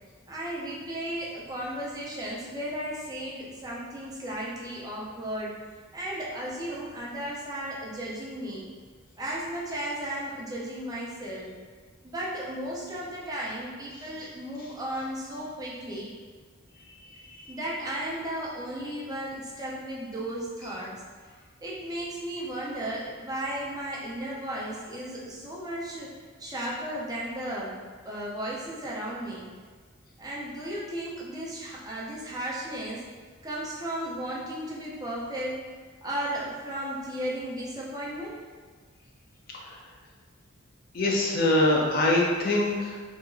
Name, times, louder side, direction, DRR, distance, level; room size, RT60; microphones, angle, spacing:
voice 1, 0.3-5.6 5.9-8.6 9.2-11.5 12.0-16.1 17.5-21.0 21.6-26.1 26.4-27.8 28.0-29.4 30.2-33.0 33.4-35.6 36.0-38.4, right 1 dB, 20° right, -5 dB, 0.4 m, -35 dB
voice 2, 17.1-17.6 39.6-39.8 40.9-43.0, left 1 dB, 45° left, -2 dB, 0.4 m, -24 dB
2.8 x 2.4 x 2.3 m, 1.5 s
head